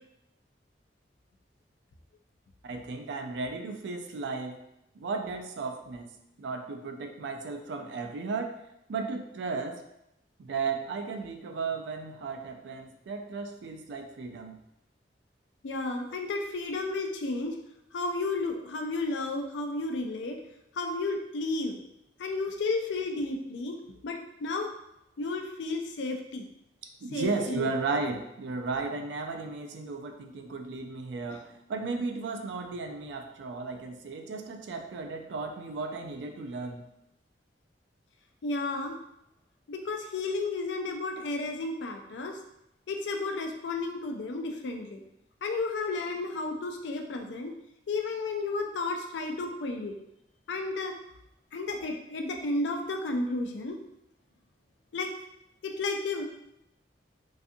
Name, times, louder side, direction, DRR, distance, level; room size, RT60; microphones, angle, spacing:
voice 1, 2.6-4.6 4.9-8.6 8.9-9.8 10.4-14.6 27.0-36.9, right 4 dB, 85° right, 5 dB, 0.3 m, -35 dB
voice 2, 15.6-17.5 17.9-20.4 20.8-21.8 22.2-23.8 24.0-24.7 25.2-26.5 27.1-27.7 38.4-39.0 39.7-42.4 42.9-45.0 45.4-47.5 47.9-50.0 50.5-50.9 51.5-53.8 54.9-55.1 55.6-56.2, left 3 dB, 90° left, 3 dB, 0.4 m, -32 dB
2.6 x 2.4 x 2.5 m, 0.85 s
head